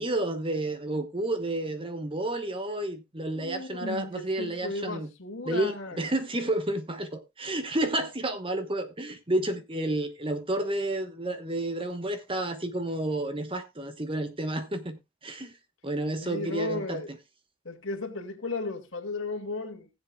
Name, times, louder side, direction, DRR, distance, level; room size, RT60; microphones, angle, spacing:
voice 1, 0.0-5.1 5.4-15.5 15.8-17.0, right 1 dB, 25° right, 1.1 m, -31 dB
voice 2, 3.4-6.0 16.2-17.1 17.6-19.9, left 3 dB, 60° left, 2.2 m, -35 dB
20.0 x 7.3 x 2.3 m
head